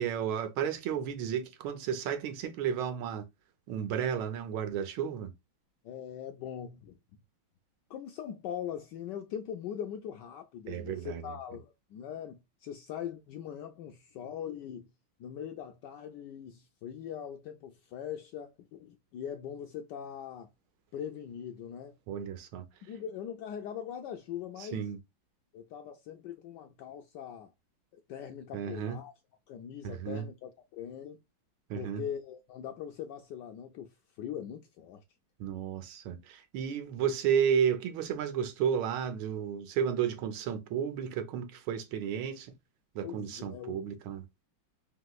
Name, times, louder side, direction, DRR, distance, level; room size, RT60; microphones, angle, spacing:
voice 1, 0.0-3.3 3.7-5.3 10.7-11.4 22.1-22.6 24.6-25.0 28.5-29.0 29.8-30.2 31.7-32.0 35.4-42.5 42.9-44.2, right 8 dB, 80° right, 1.5 m, -32 dB
voice 2, 5.8-6.9 7.9-14.9 15.2-20.5 20.9-22.0 22.8-24.9 25.5-27.5 28.1-29.1 29.5-31.2 31.7-35.0 43.0-43.9, left 9 dB, 75° left, 1.0 m, -41 dB
3.6 x 2.9 x 2.2 m
omnidirectional pair, 2.3 m